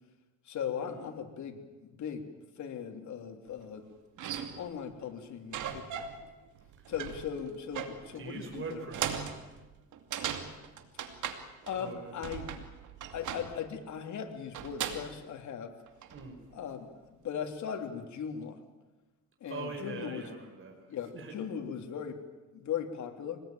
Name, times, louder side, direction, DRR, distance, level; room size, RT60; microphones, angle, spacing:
voice 1, 0.4-2.3 2.6-3.9 4.6-6.0 6.9-8.8 11.7-12.7 13.1-15.7 16.5-16.9 17.2-18.6 19.4-20.3 20.9-22.2 22.5-23.4, left 8 dB, 70° left, 4 dB, 3.3 m, -38 dB
sound 1, 3.6-3.7 4.2-4.8 5.5-6.3 6.5-11.9 12.2-13.7 14.5-15.2 15.9-16.3, right 8 dB, 80° right, 2.6 m, -39 dB
voice 2, 8.1-9.3 11.7-12.2 16.1-16.4 19.4-21.4, right 4 dB, 45° right, 3 dB, 5.2 m, -43 dB
25.5 x 19.5 x 9.2 m, 1.1 s
cardioid pair, 90°, 30 cm